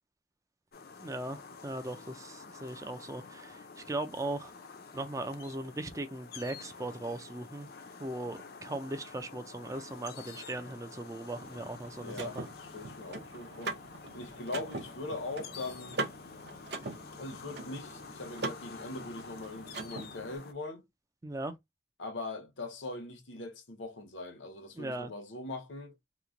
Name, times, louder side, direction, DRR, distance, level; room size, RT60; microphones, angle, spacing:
sound 1, 0.7-20.5, left 5 dB, 50° left, 0.5 m, -49 dB
voice 1, 1.0-4.5 4.9-7.7 8.0-12.5 21.2-21.5 24.7-25.1, right 2 dB, 15° right, 0.3 m, -38 dB
Car / Mechanisms, 11.4-20.4, right 2 dB, 60° right, 0.7 m, -42 dB
voice 2, 12.0-13.8 14.1-16.0 17.2-20.9 22.0-25.9, left 2 dB, 80° left, 0.8 m, -41 dB
3.0 x 2.1 x 3.6 m
head